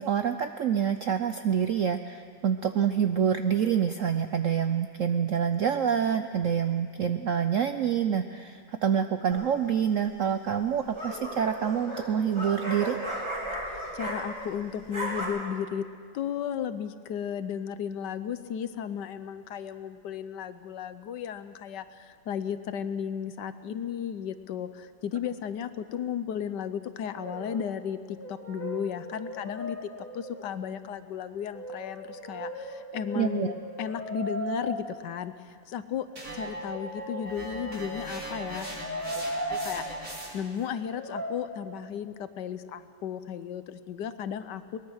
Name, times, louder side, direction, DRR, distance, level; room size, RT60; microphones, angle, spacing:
voice 1, 0.0-13.0 33.2-33.5, right 8 dB, 70° right, 9 dB, 0.7 m, -27 dB
sound 1, 9.3-9.7 10.6-14.5 14.8-15.2, right 1 dB, 15° right, 3.3 m, -35 dB
voice 2, 13.7-15.8 16.1-29.8 30.1-33.5 33.8-35.3 35.7-36.1 36.3-44.8, left 8 dB, 70° left, 12 dB, 1.3 m, -34 dB
Brass instrument, 27.0-27.7 28.0-30.5 31.5-34.7 36.1-39.9 40.9-41.4, equal, 5° left, 2.3 m, -38 dB
sound 2, 36.2-40.6, right 1 dB, 45° right, 3.6 m, -40 dB
22.5 x 20.0 x 6.4 m, 2.1 s
omnidirectional pair, 2.1 m